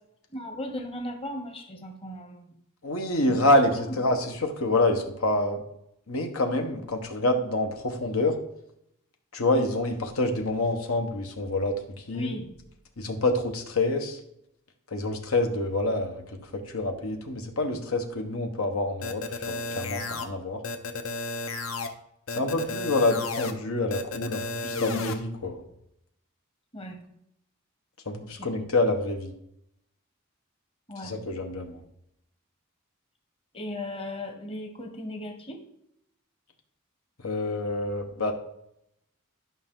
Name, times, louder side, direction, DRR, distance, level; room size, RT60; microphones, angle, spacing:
voice 1, 0.3-2.5 3.3-3.5 3.9-4.2 12.1-12.6 26.7-27.0 28.3-28.5 30.9-31.2 33.5-35.6, left 1 dB, 25° left, 4 dB, 1.1 m, -37 dB
voice 2, 2.8-5.6 6.1-8.3 9.3-12.3 13.0-14.2 14.9-16.2 16.5-20.6 22.3-25.6 28.1-29.3 31.0-31.8 37.2-38.3, left 2 dB, 85° left, 4 dB, 1.3 m, -27 dB
sound 1, 19.0-20.3 20.6-21.9 22.3-23.5 23.9-25.1, left 3 dB, 70° left, 0.9 m, -32 dB
11.5 x 5.6 x 3.8 m, 0.78 s
head